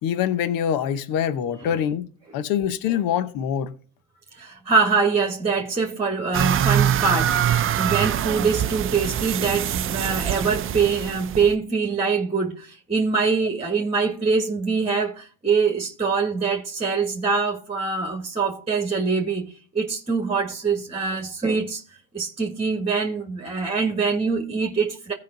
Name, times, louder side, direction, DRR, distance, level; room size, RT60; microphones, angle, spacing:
voice 1, 0.0-2.1 2.3-3.7, left 9 dB, 60° left, 1.1 m, -24 dB
voice 2, 4.3-21.8 22.1-25.1, right 5 dB, 15° right, 1.6 m, -24 dB
sound 1, 6.3-11.5, right 10 dB, 30° right, 0.6 m, -24 dB
16.0 x 5.3 x 3.9 m
supercardioid pair, 90°, 40 cm